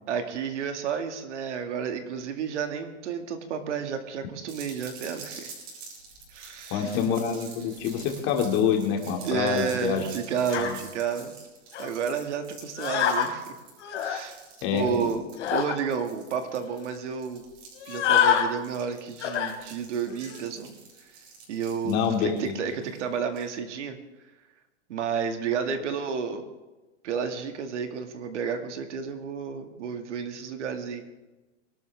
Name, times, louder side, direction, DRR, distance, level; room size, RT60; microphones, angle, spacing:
voice 1, 0.1-5.5 6.3-7.0 9.2-11.4 11.8-13.5 13.9-14.4 14.7-15.2 15.5-17.4 17.9-20.7 21.0-21.1 21.5-24.0 24.9-26.4 27.0-31.0, right 6 dB, 75° right, 6 dB, 2.2 m, -31 dB
sound 1, 4.5-23.5, right 4 dB, 60° right, 6.4 m, -47 dB
voice 2, 6.7-10.0 14.6-15.1 21.8-22.6, left 7 dB, 35° left, 2 dB, 2.6 m, -26 dB
sound 2, 10.5-10.7 11.7-11.9 12.8-13.3 13.8-14.2 15.4-15.8 16.4-16.5 16.7-16.9 17.8-18.5 19.2-19.5 20.1-20.4, left 9 dB, 75° left, 2.8 m, -26 dB
23.0 x 12.5 x 3.6 m, 1.1 s
supercardioid pair, 160°, 36 cm